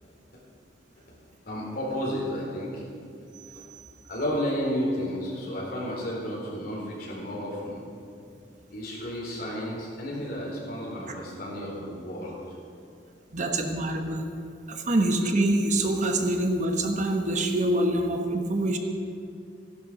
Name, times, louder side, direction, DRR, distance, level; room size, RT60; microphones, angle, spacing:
voice 1, 1.5-2.8 3.5-3.7 4.1-7.8 8.7-12.3, equal, 60° left, -4 dB, 4.2 m, -32 dB
voice 2, 3.4-3.8 13.3-14.3 14.7-18.8, right 1 dB, 45° right, 3 dB, 1.1 m, -25 dB
15.5 x 11.5 x 5.2 m, 2.4 s
head